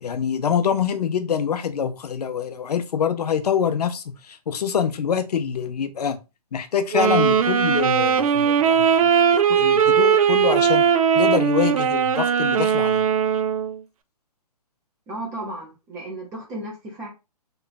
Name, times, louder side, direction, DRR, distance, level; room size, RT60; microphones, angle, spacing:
voice 1, 0.0-6.2 6.5-10.9 11.1-13.0, left 7 dB, 75° left, 0.6 m, -25 dB
Wind instrument woodwind instrument, 6.9-13.8, right 7 dB, 60° right, 0.4 m, -19 dB
voice 2, 15.1-17.1, right 1 dB, 15° right, 0.6 m, -34 dB
3.0 x 2.4 x 2.2 m
hypercardioid pair, 145°, 20 cm